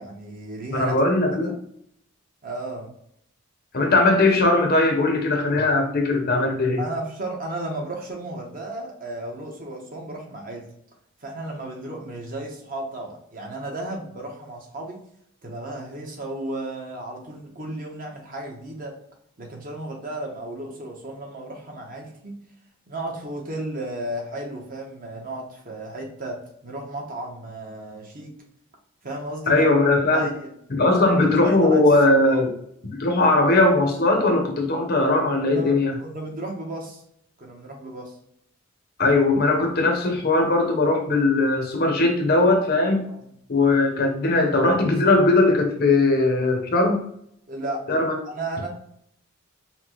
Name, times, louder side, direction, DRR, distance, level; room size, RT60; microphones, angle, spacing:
voice 1, 0.0-0.9 1.3-1.5 2.4-2.9 6.8-10.7 11.2-15.0 15.4-18.9 19.4-22.4 22.9-28.3 29.0-29.6 30.1-30.4 30.8-31.8 32.2-32.4 35.5-37.0 37.4-38.2 43.0-43.3 47.5-47.8 48.2-48.7, right 1 dB, 40° right, 0 dB, 0.9 m, -34 dB
voice 2, 0.7-1.6 3.7-6.8 29.5-30.3 30.7-32.5 33.0-35.9 39.0-43.0 43.5-47.0 47.9-48.2, left 2 dB, 45° left, 3 dB, 0.7 m, -19 dB
5.7 x 2.1 x 3.0 m, 0.70 s
head